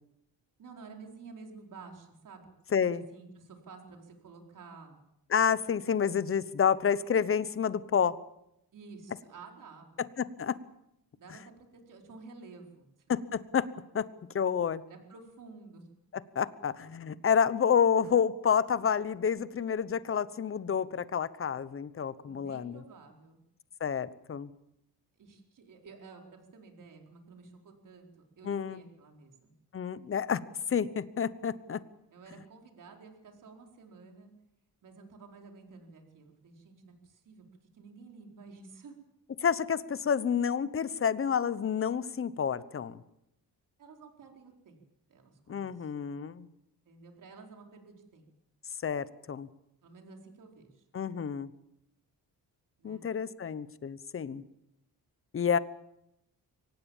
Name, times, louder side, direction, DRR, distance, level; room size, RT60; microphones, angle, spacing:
voice 1, 0.6-2.5 2.9-5.0 8.7-10.0 11.2-12.9 14.9-15.9 22.2-23.4 25.2-28.1 28.4-29.5 32.1-34.3 34.8-37.4 37.7-38.9 43.8-44.8 45.1-45.9 46.8-48.3 49.8-50.8 52.8-53.0, right 4 dB, 55° right, 2 dB, 4.6 m, -51 dB
voice 2, 2.7-3.0 5.3-8.2 10.2-10.6 13.1-13.7 13.9-14.1 14.3-14.8 16.3-22.8 23.8-24.5 28.4-28.8 29.7-30.4 30.7-31.8 39.4-43.0 45.5-46.5 48.8-49.5 50.9-51.5 52.8-54.4 55.3-55.6, left 7 dB, 35° left, 16 dB, 1.0 m, -29 dB
23.5 x 18.5 x 7.3 m, 0.81 s
cardioid pair, 130°, 37 cm